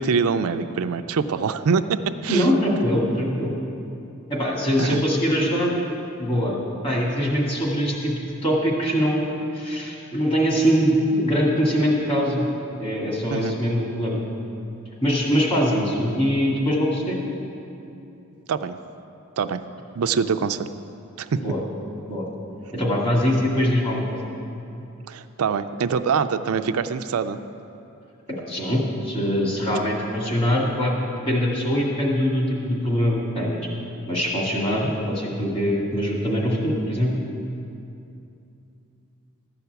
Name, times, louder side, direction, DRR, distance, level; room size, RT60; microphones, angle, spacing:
voice 1, 0.0-2.5 4.8-5.0 13.3-13.6 18.5-18.8 19.4-19.6 20.0-20.7 21.2-21.4 25.1-27.4, right 5 dB, 80° right, 10 dB, 0.4 m, -24 dB
voice 2, 2.3-3.5 4.3-5.8 6.2-6.6 6.8-8.1 8.4-12.5 12.8-14.2 15.0-17.2 21.4-21.6 22.1-22.2 22.7-24.0 28.5-30.9 31.3-33.7 34.1-37.1, equal, 25° left, -3 dB, 2.1 m, -22 dB
13.0 x 5.8 x 8.0 m, 2.7 s
head